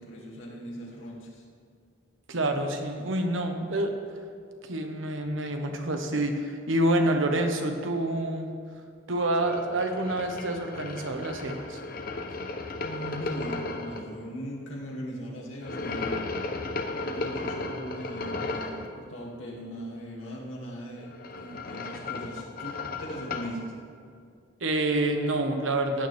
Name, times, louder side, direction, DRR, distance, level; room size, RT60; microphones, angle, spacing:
voice 1, 0.0-1.4 12.7-23.7, equal, 90° left, -3 dB, 2.6 m, -39 dB
voice 2, 2.3-3.9 4.6-8.5 9.1-11.8 24.6-26.1, right 1 dB, 90° right, 4 dB, 1.3 m, -27 dB
sound 1, 9.4-14.0 15.6-18.9 21.0-23.6, left 3 dB, 50° left, 0.9 m, -35 dB
16.0 x 9.4 x 3.5 m, 2.3 s
head